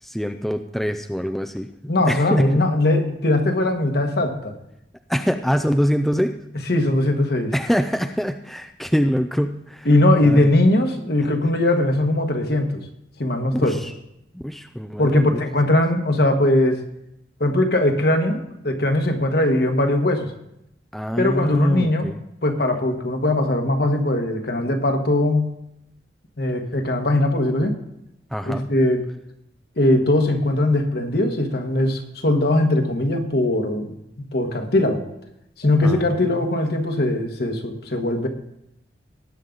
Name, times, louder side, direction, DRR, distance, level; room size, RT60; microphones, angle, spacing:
voice 1, 0.0-2.5 5.1-6.4 7.5-9.9 10.2-10.5 11.4-11.5 13.5-13.9 14.3-15.4 20.9-22.2 28.3-28.7 35.8-36.5, equal, ahead, 6 dB, 0.4 m, -24 dB
voice 2, 1.9-4.5 6.7-7.5 9.8-12.8 13.2-13.8 15.0-16.8 17.4-20.3 21.2-22.1 22.4-25.5 26.4-27.7 28.5-29.0 29.8-33.9 34.3-35.0 35.6-38.3, left 1 dB, 60° left, 4 dB, 1.5 m, -20 dB
19.0 x 7.4 x 4.0 m, 0.80 s
head